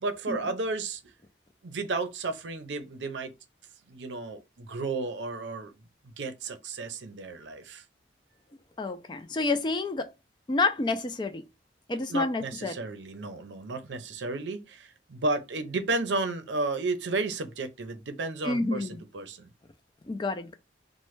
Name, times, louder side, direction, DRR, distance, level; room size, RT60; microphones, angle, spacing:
voice 1, 0.0-1.0 1.6-3.3 3.9-5.7 6.2-7.8 12.1-19.5, right 3 dB, 80° right, 0.6 m, -33 dB
voice 2, 8.8-10.1 10.5-11.4 11.9-12.8 18.4-19.0 20.1-20.5, left 3 dB, 25° left, 0.3 m, -29 dB
3.1 x 2.1 x 3.1 m
head